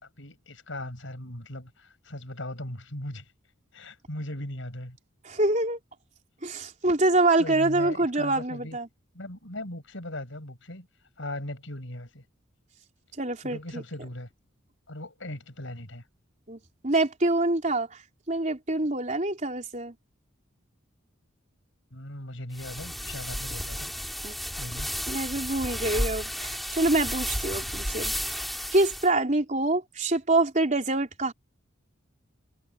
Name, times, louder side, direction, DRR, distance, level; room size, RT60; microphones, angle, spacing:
voice 1, 0.0-3.3 3.7-5.0 7.4-8.8 9.1-10.9 11.2-12.2 13.4-14.3 14.9-16.0 21.9-23.9 24.5-24.9, left 1 dB, 70° left, 5.6 m, -38 dB
voice 2, 5.2-5.8 6.4-8.9 13.2-13.8 16.5-18.0 18.3-19.9 24.2-24.3 25.1-28.5 28.7-31.3, right 2 dB, 35° right, 4.0 m, -26 dB
sound 1, 22.5-29.1, equal, ahead, 2.5 m, -33 dB
head